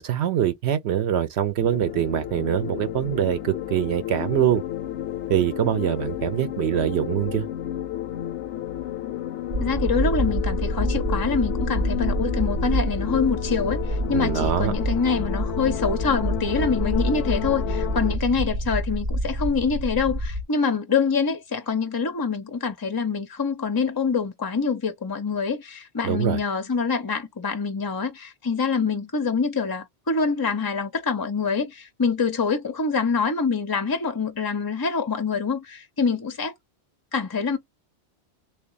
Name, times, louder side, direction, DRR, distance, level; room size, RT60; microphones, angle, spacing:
voice 1, 0.0-4.6 5.3-7.5 14.1-14.7 26.0-26.4, right 10 dB, 75° right, 0.8 m, -24 dB
sound 1, 1.6-18.2, left 12 dB, 85° left, 0.9 m, -32 dB
sound 2, 9.5-20.4, right 1 dB, 45° right, 0.5 m, -27 dB
voice 2, 9.6-36.5 37.1-37.6, left 5 dB, 35° left, 0.3 m, -25 dB
3.4 x 2.3 x 3.8 m
omnidirectional pair, 1.2 m